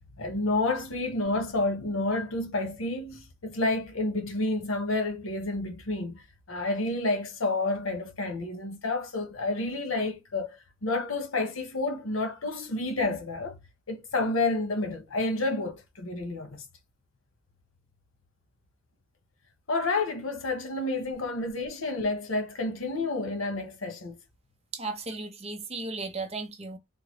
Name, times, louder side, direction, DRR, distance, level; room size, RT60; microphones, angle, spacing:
voice 1, 0.2-6.2 6.5-10.6 10.8-13.6 13.9-16.6 19.7-24.2, left 2 dB, 90° left, 1.1 m, -29 dB
voice 2, 24.7-26.8, right 3 dB, 30° right, 0.7 m, -35 dB
3.7 x 2.2 x 3.1 m
head